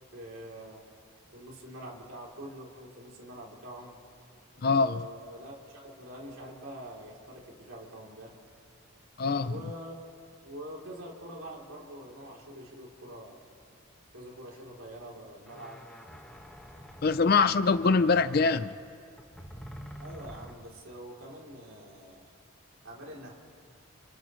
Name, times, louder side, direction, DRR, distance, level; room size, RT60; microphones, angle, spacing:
voice 1, 0.1-0.8 1.3-4.0 4.8-8.3 9.4-10.0 10.4-13.4 14.1-15.9 20.0-22.3 22.8-23.4, equal, 70° right, 3.2 m, -45 dB
voice 2, 4.6-5.0 9.2-9.5 17.0-18.7, left 4 dB, 45° left, 0.4 m, -23 dB
sound 1, 15.0-15.1 15.4-20.5, equal, 5° left, 1.4 m, -47 dB
30.0 x 30.0 x 3.1 m
head